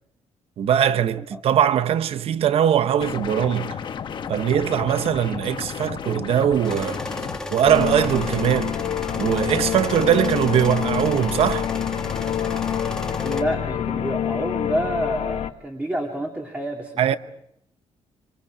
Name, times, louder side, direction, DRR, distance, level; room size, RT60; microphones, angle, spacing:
voice 1, 0.6-3.8 4.3-7.0 7.5-8.8 9.2-11.7 17.0-17.2, right 9 dB, 60° right, 0.8 m, -21 dB
sound 1, 3.0-7.4, left 7 dB, 45° left, 1.3 m, -33 dB
sound 2, 6.6-13.4, left 1 dB, 5° left, 1.7 m, -33 dB
sound 3, 7.6-15.5, left 10 dB, 65° left, 1.0 m, -27 dB
voice 2, 13.2-17.2, equal, 15° right, 2.6 m, -28 dB
26.5 x 26.5 x 4.8 m
cardioid pair, 150°, 11 cm